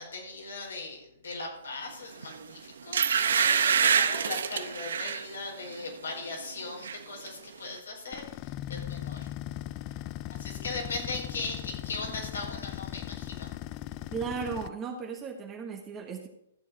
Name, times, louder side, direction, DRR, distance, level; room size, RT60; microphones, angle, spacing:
voice 1, 0.0-9.3 10.3-13.5, left 3 dB, 85° left, 0 dB, 4.6 m, -39 dB
sound 1, 2.2-2.4 2.9-5.2 5.7-5.9 6.3-7.0 7.3-7.4, right 7 dB, 75° right, 0.8 m, -26 dB
sound 2, 8.1-14.7, left 13 dB, 35° left, 0.5 m, -38 dB
voice 2, 14.1-16.3, right 5 dB, 20° right, 3 dB, 1.2 m, -36 dB
14.0 x 7.0 x 4.7 m, 0.79 s
hypercardioid pair, 140°, 0 cm